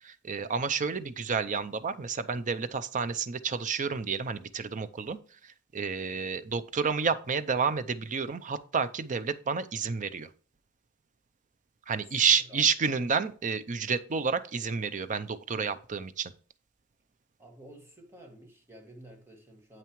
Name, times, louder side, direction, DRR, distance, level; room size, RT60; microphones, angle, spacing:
voice 1, 0.0-5.2 5.4-10.3 11.9-16.3, right 5 dB, 40° right, 0.5 m, -30 dB
voice 2, 12.1-13.0 17.4-19.8, right 1 dB, 10° right, 1.9 m, -51 dB
9.1 x 7.9 x 3.1 m
head